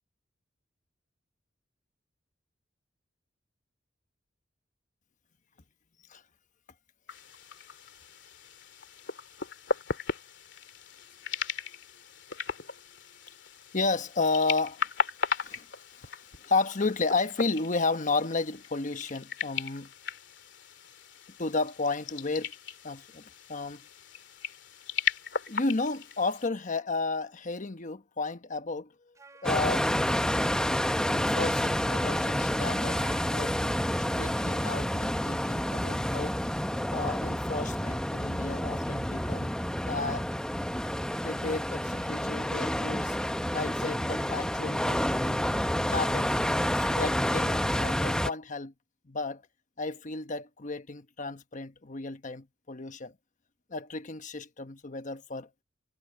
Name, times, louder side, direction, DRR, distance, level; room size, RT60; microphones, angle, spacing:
sound 1, 7.1-26.5, left 5 dB, 70° left, 2.7 m, -37 dB
voice 1, 13.7-14.8 15.3-15.6 16.4-19.9 21.4-22.5 22.8-23.2 23.5-23.8 25.5-28.9 29.4-30.0 31.1-33.6 34.1-36.4 36.9-39.5 39.9-40.3 41.2-45.4 45.9-46.3 46.7-48.7 49.1-49.4 49.8-53.1 53.7-55.5, left 3 dB, 45° left, 1.1 m, -32 dB
Wind instrument woodwind instrument, 29.1-33.7, right 3 dB, 20° right, 4.1 m, -53 dB
sound 2, 29.4-48.3, equal, 5° left, 1.0 m, -29 dB
head